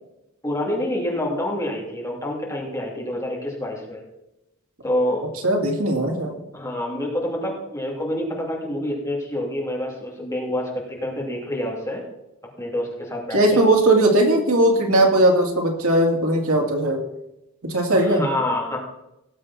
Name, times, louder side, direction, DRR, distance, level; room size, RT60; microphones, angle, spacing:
voice 1, 0.4-4.0 4.8-5.3 6.5-12.0 12.6-13.6 17.9-18.8, left 1 dB, 15° left, -2 dB, 2.9 m, -27 dB
voice 2, 5.4-6.3 13.3-17.0 17.6-18.2, right 1 dB, 85° right, 1 dB, 2.6 m, -18 dB
18.0 x 7.6 x 4.2 m, 0.89 s
head